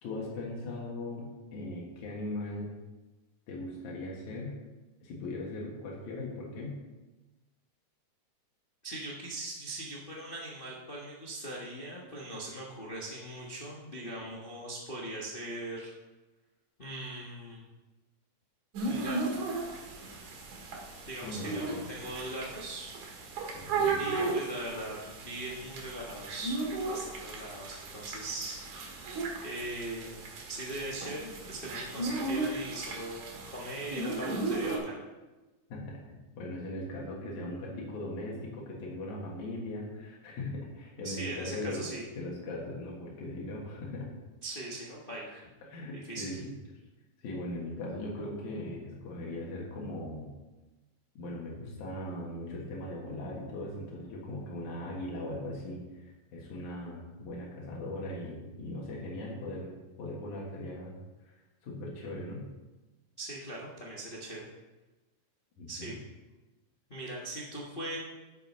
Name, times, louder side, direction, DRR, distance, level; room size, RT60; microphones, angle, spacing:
voice 1, 0.0-2.7 3.5-4.6 5.0-6.8 21.2-21.9 23.5-24.0 35.7-41.9 42.1-44.1 45.7-46.5 47.2-50.3 51.1-61.0 61.2-61.3 61.6-62.4 65.6-66.0, left 1 dB, 70° left, -3 dB, 3.0 m, -39 dB
voice 2, 8.8-15.9 16.8-17.7 18.8-19.3 21.0-22.9 24.0-26.5 26.8-28.6 28.9-29.1 29.4-30.2 30.5-35.0 41.0-42.0 44.4-45.5 46.1-46.4 63.2-64.5 65.7-66.0 66.9-68.0, right 1 dB, 55° left, -4 dB, 0.6 m, -40 dB
old cat eating, 18.7-34.8, right 3 dB, 75° right, 3.1 m, -36 dB
8.2 x 7.9 x 5.5 m, 1.2 s
omnidirectional pair, 3.6 m